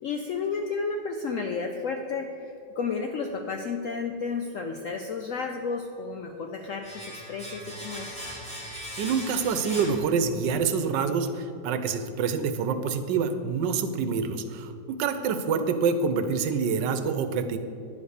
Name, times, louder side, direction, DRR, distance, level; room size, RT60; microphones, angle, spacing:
voice 1, 0.0-8.2, left 4 dB, 75° left, 4 dB, 0.7 m, -32 dB
Domestic sounds home sounds, 6.8-10.7 10.9-11.1, equal, 5° left, 2.0 m, -39 dB
voice 2, 8.7-17.6, right 5 dB, 80° right, 9 dB, 1.3 m, -27 dB
10.0 x 5.4 x 6.4 m, 2.5 s
omnidirectional pair, 1.9 m